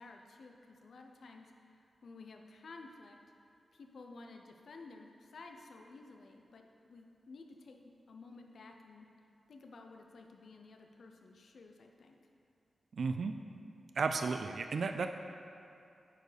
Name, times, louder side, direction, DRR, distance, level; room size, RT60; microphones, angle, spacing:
voice 1, 0.0-1.5 2.0-3.2 3.7-9.1 9.5-12.2, left 3 dB, 65° left, 3 dB, 0.5 m, -53 dB
voice 2, 12.9-13.3 14.0-15.1, right 4 dB, 60° right, 7 dB, 0.3 m, -33 dB
9.2 x 4.5 x 5.0 m, 2.6 s
wide cardioid pair, 140°, 0 cm